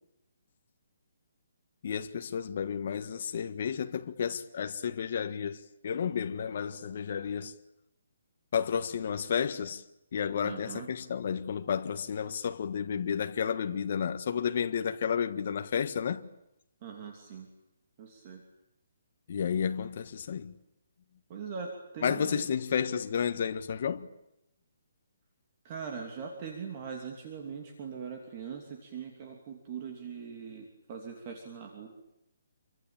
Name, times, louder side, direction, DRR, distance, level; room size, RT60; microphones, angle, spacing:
voice 1, 1.8-5.6 5.8-7.5 8.5-9.8 10.1-16.2 19.3-20.5 22.0-24.1, left 7 dB, 35° left, 1.5 m, -31 dB
voice 2, 10.4-10.9 16.8-17.5 18.0-18.4 21.3-22.5 25.6-31.9, right 6 dB, 20° right, 2.8 m, -41 dB
27.5 x 24.5 x 8.8 m
hypercardioid pair, 180°, 0 cm